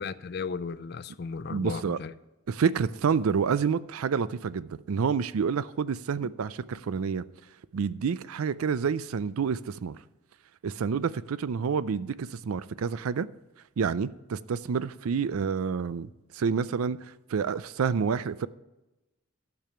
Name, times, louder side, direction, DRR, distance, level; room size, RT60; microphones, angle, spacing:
voice 1, 0.0-2.1 6.2-6.3, left 5 dB, 50° left, 0.4 m, -35 dB
voice 2, 1.5-2.0 2.5-7.2 7.7-10.0 10.6-13.3 13.8-17.0 17.3-18.5, right 6 dB, 90° right, 0.4 m, -28 dB
12.0 x 6.9 x 5.7 m
head